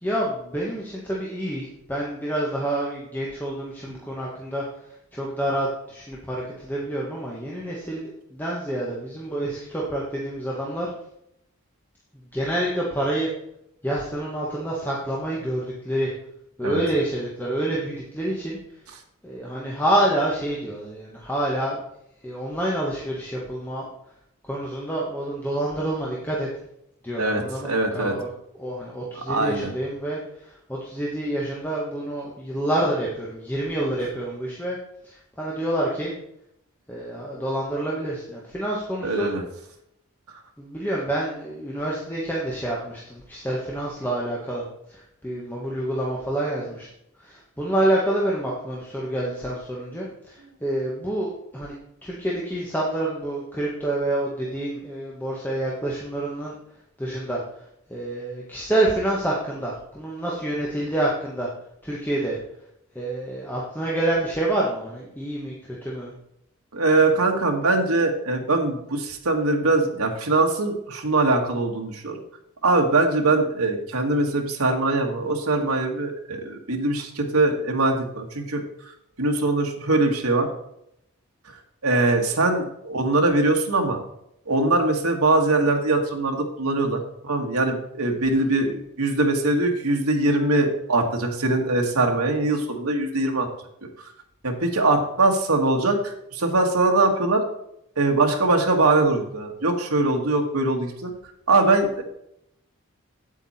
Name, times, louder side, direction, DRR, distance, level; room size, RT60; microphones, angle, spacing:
voice 1, 0.0-10.9 12.3-13.3 13.8-16.1 16.6-18.6 19.2-21.8 22.2-23.8 24.4-26.5 27.0-34.8 35.0-36.1 36.9-39.3 40.6-46.9 47.2-51.7 52.0-56.5 57.0-57.6 57.9-61.5 61.8-62.4 62.9-65.5 65.8-66.1 88.3-88.5, right 1 dB, 10° left, -4 dB, 1.4 m, -27 dB
voice 2, 27.2-28.1 29.3-29.7 39.0-39.4 66.7-72.2 72.6-78.6 79.2-80.5 81.8-84.0 84.5-93.5 94.4-97.4 98.0-101.1 101.5-102.0, right 2 dB, 85° right, 3 dB, 1.7 m, -22 dB
8.6 x 8.2 x 4.3 m, 0.77 s
head